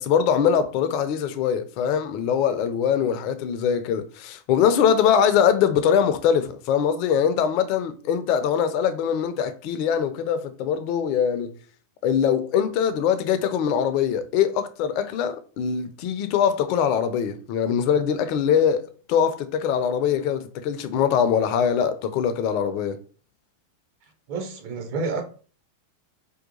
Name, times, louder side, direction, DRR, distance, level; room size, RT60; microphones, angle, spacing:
voice 1, 0.0-11.6 12.0-23.0, left 8 dB, 45° left, 0.3 m, -22 dB
voice 2, 24.3-25.2, right 4 dB, 45° right, 0.6 m, -29 dB
2.7 x 2.2 x 2.7 m
figure-of-eight pair, 90°, 0 cm